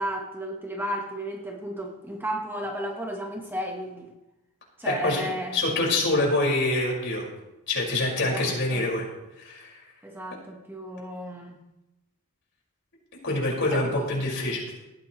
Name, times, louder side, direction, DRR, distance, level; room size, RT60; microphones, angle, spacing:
voice 1, 0.0-4.1 4.8-5.6 8.2-8.9 10.0-11.6 13.7-14.3, equal, 10° right, 1 dB, 1.2 m, -33 dB
voice 2, 4.8-7.3 7.7-9.0 9.4-9.8 13.2-14.6, left 2 dB, 55° left, -2 dB, 5.2 m, -25 dB
19.0 x 14.5 x 3.2 m, 0.96 s
head